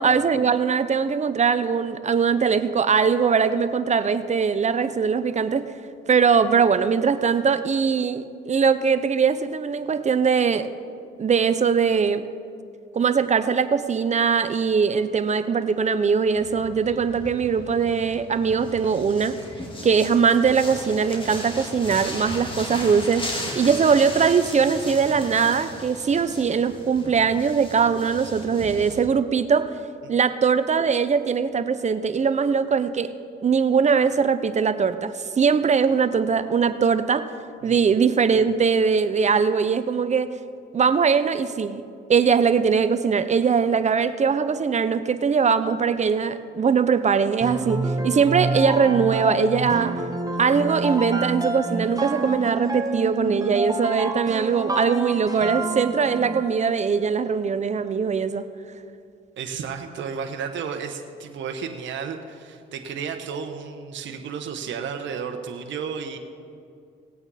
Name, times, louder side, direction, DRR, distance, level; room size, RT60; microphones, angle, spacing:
voice 1, 0.0-5.7 6.1-10.7 11.2-12.2 12.9-19.4 19.8-23.3 23.6-29.7 30.1-33.1 33.4-37.3 37.6-40.3 40.7-41.8 42.1-47.8 48.0-49.9 50.4-58.5, right 6 dB, 35° right, 12 dB, 0.6 m, -21 dB
sound 1, 16.4-29.1, left 1 dB, 25° left, 2.2 m, -36 dB
sound 2, 47.4-56.6, right 2 dB, 20° right, 1.2 m, -28 dB
voice 2, 59.4-66.2, right 6 dB, 70° right, 5 dB, 1.1 m, -33 dB
18.0 x 8.6 x 4.1 m, 2.4 s
cardioid pair, 90°, 20 cm